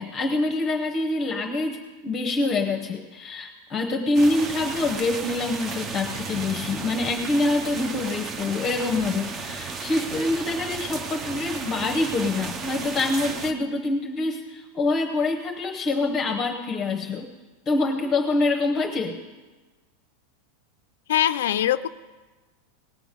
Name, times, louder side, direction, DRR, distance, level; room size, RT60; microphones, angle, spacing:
voice 1, 0.0-17.3 17.7-19.2, left 2 dB, 20° left, 4 dB, 0.8 m, -25 dB
sound 1, 4.1-13.5, right 4 dB, 20° right, 0.6 m, -34 dB
voice 2, 21.1-21.9, left 11 dB, 85° left, 11 dB, 0.4 m, -22 dB
18.5 x 6.9 x 5.1 m, 1.3 s
supercardioid pair, 165°, 0 cm